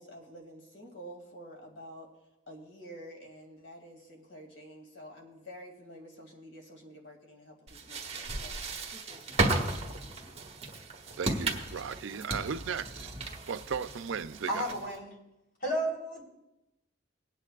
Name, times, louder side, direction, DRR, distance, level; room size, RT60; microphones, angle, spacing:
voice 1, 0.0-2.1 2.5-10.3, equal, 70° left, 2.3 m, -49 dB
sound 1, 7.7-15.0, right 2 dB, 35° right, 1.3 m, -34 dB
voice 2, 11.2-13.1 13.5-14.7, right 6 dB, 80° right, 0.5 m, -36 dB
voice 3, 14.5-15.1 15.6-16.2, right 1 dB, 55° left, 3.8 m, -32 dB
21.5 x 9.0 x 2.4 m
head